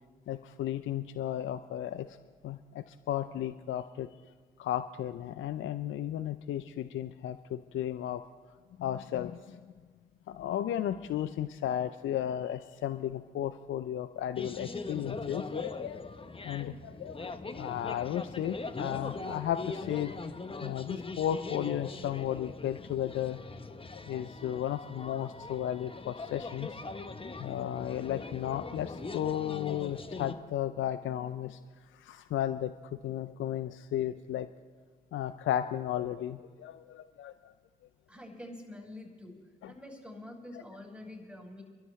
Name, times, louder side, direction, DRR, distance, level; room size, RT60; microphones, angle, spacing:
voice 1, 0.3-2.1 2.4-4.1 4.6-8.2 8.8-9.6 10.3-16.0 16.4-20.2 20.6-23.4 24.1-26.7 27.4-31.6 31.9-34.5 35.1-37.5 39.6-39.7, left 11 dB, 70° left, 11 dB, 0.6 m, -34 dB
sound 1, 14.4-30.3, left 3 dB, 25° left, 1.1 m, -41 dB
voice 2, 38.1-39.4 39.7-41.6, left 1 dB, 5° right, -1 dB, 5.8 m, -46 dB
27.5 x 13.0 x 3.3 m, 1.5 s
hypercardioid pair, 40°, 21 cm